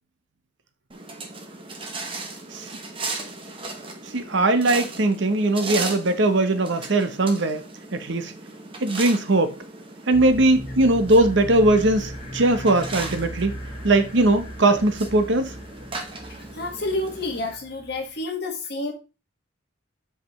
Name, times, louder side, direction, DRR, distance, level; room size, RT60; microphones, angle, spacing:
sound 1, 0.9-17.5, right 3 dB, 25° right, 0.9 m, -37 dB
voice 1, 4.1-7.6 7.9-8.3 8.8-9.6 10.1-13.5 13.8-15.5, right 2 dB, 60° right, 0.8 m, -20 dB
sound 2, 10.1-18.2, equal, 25° left, 1.2 m, -38 dB
voice 2, 16.6-18.9, left 2 dB, 50° left, 1.5 m, -29 dB
7.6 x 5.1 x 3.1 m
head